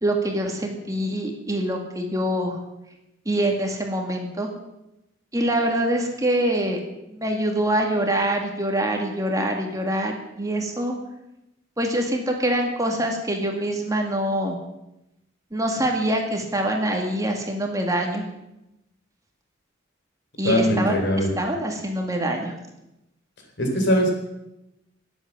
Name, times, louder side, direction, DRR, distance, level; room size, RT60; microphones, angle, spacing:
voice 1, 0.0-2.6 3.3-4.5 5.3-6.8 7.1-11.0 11.8-14.6 15.5-18.2 20.4-22.5, right 1 dB, 20° right, 2 dB, 2.1 m, -25 dB
voice 2, 20.4-21.3 23.6-24.1, equal, 60° left, 3 dB, 3.7 m, -21 dB
19.5 x 8.2 x 7.2 m, 0.90 s
head